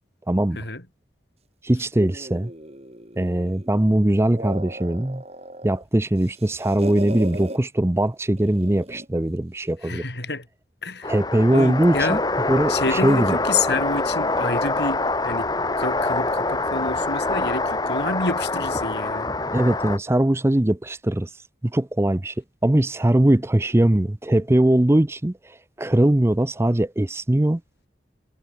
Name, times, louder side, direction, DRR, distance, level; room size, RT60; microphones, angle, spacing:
voice 1, 0.3-0.6 1.6-2.5 3.2-5.2 5.6-10.0 11.1-12.2 12.5-13.4 19.5-21.3 21.6-22.3 22.6-27.6, right 1 dB, 15° right, 0.5 m, -21 dB
sound 1, 2.0-3.7 4.2-5.8 6.2-7.6 8.4-9.2, right 1 dB, 35° right, 6.8 m, -37 dB
voice 2, 9.8-10.5 10.8-11.1 11.5-12.2 12.7-15.5 15.8-19.3, left 3 dB, 70° left, 6.2 m, -28 dB
sound 2, 11.0-20.0, left 2 dB, 20° left, 1.9 m, -25 dB
head